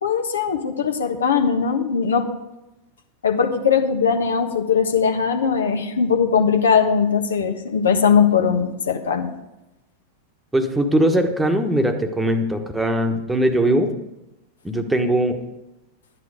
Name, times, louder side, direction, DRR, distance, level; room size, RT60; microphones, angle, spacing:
voice 1, 0.0-2.3 3.2-9.3, left 6 dB, 70° left, 6 dB, 1.3 m, -20 dB
voice 2, 10.5-13.9 14.6-15.4, right 1 dB, 5° right, 6 dB, 1.3 m, -20 dB
12.0 x 9.6 x 5.0 m, 0.97 s
figure-of-eight pair, 90°, 0 cm